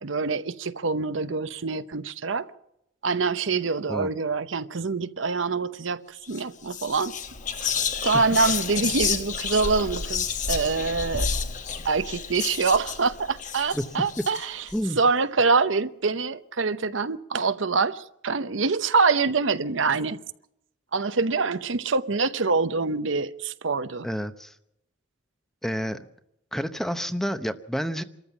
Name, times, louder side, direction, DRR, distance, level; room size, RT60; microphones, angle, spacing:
voice 1, 0.0-2.5 3.0-7.1 7.5-7.7 8.0-11.3 11.8-14.6 14.9-20.2 20.9-24.1, right 4 dB, 70° right, 0.8 m, -25 dB
Whispering, 6.2-6.4 6.7-14.8, left 6 dB, 40° left, 1.1 m, -30 dB
voice 2, 24.0-24.5 25.6-26.1 26.5-28.0, equal, ahead, 0.8 m, -29 dB
26.5 x 14.0 x 7.2 m
head